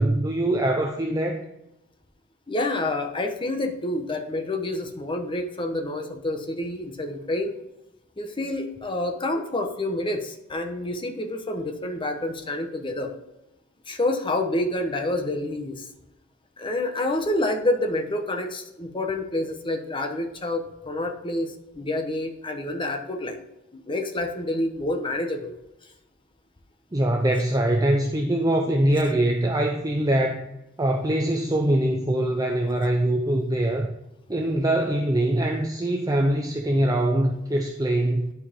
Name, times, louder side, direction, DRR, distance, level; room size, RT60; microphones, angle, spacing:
voice 1, 0.0-1.4 26.9-30.5 30.8-33.9 34.3-38.3, right 1 dB, 20° right, 2 dB, 0.6 m, -23 dB
voice 2, 2.5-7.6 8.2-13.1 13.9-15.9 16.6-23.4 23.7-25.5, left 1 dB, 25° left, 5 dB, 1.0 m, -28 dB
11.5 x 4.7 x 3.6 m, 0.90 s
head